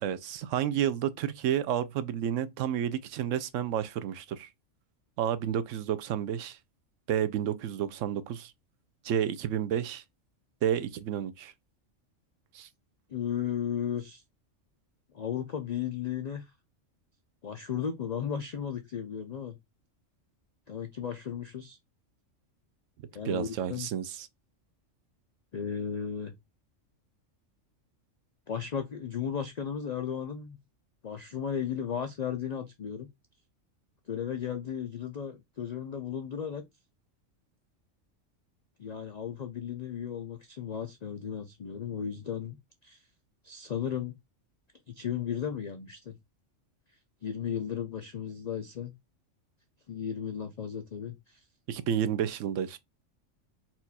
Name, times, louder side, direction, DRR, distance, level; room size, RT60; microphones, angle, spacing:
voice 1, 0.0-4.5 5.2-6.6 7.1-8.5 9.0-10.0 10.6-11.5 12.5-12.7 23.2-24.3 51.7-52.8, right 9 dB, 75° right, 0.9 m, -30 dB
voice 2, 13.1-14.2 15.1-16.5 17.4-19.6 20.7-21.8 23.1-23.9 25.5-26.3 28.5-30.6 31.0-33.1 34.1-36.6 38.8-42.6 42.8-43.0 43.4-44.1 44.9-46.2 47.2-48.9 49.9-51.4, left 8 dB, 65° left, 0.4 m, -35 dB
4.4 x 2.4 x 4.1 m
omnidirectional pair, 1.3 m